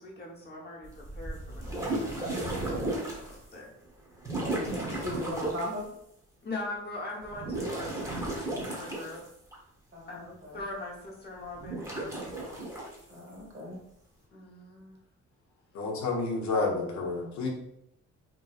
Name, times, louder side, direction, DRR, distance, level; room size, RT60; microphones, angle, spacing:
voice 1, 0.0-3.7 6.4-9.2 10.1-12.3 14.3-15.0, left 2 dB, 35° left, -3 dB, 1.0 m, -42 dB
sound 1, 0.8-3.4 4.2-5.7 7.2-9.6 11.6-13.0, right 2 dB, 10° right, 0.9 m, -34 dB
voice 2, 4.9-5.9 9.9-10.6 13.1-13.8, left 1 dB, 40° right, -2 dB, 1.2 m, -38 dB
voice 3, 15.7-17.5, left 3 dB, 70° left, 0 dB, 0.7 m, -30 dB
2.9 x 2.6 x 2.4 m, 0.76 s
cardioid pair, 90°, 30 cm